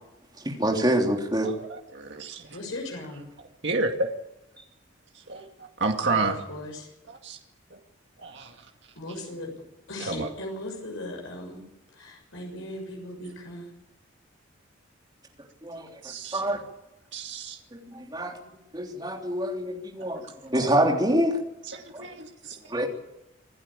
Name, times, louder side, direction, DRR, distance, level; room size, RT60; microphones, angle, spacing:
voice 1, 0.3-1.5 4.6-4.7 15.6-16.0 16.3-16.6 17.7-18.3 18.7-21.4 21.9-22.0 22.7-22.9, right 1 dB, 20° right, 1 dB, 3.4 m, -26 dB
voice 2, 1.4-2.6 3.4-4.1 5.1-6.4 7.1-7.4 7.7-7.8 8.2-8.7 10.0-10.3 16.0-16.6 17.1-17.6 20.0-20.2 20.5-20.8 21.7-22.7, right 3 dB, 60° right, 2 dB, 2.2 m, -31 dB
voice 3, 2.5-3.2 6.1-6.9 9.0-9.5 9.9-11.6 11.9-13.7 18.4-18.9, left 1 dB, 85° left, 1 dB, 6.7 m, -38 dB
26.5 x 12.0 x 8.9 m, 0.92 s
head